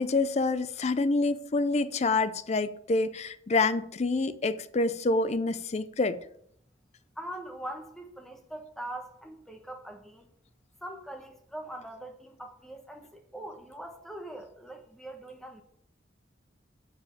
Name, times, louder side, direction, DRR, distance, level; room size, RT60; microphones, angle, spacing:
voice 1, 0.0-6.2, left 3 dB, 35° left, 0.5 m, -27 dB
voice 2, 7.2-10.3 10.8-15.6, right 1 dB, ahead, 1.1 m, -42 dB
7.3 x 5.0 x 7.2 m
head